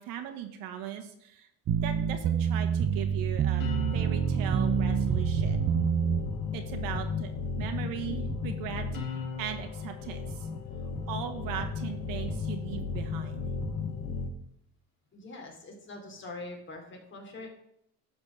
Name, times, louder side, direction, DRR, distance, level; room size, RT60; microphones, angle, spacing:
voice 1, 0.0-1.5 1.8-3.6 3.9-5.6 6.5-7.3 7.6-8.8 9.4-10.5 11.1-13.5, right 9 dB, 75° right, 6 dB, 1.6 m, -38 dB
sound 1, 1.7-6.2, right 7 dB, 40° right, 0.7 m, -27 dB
sound 2, 3.6-14.3, left 4 dB, 70° left, 2.1 m, -35 dB
voice 2, 15.1-17.5, left 2 dB, 35° left, 1 dB, 3.3 m, -43 dB
12.0 x 4.4 x 7.3 m, 0.74 s
cardioid pair, 115°, 34 cm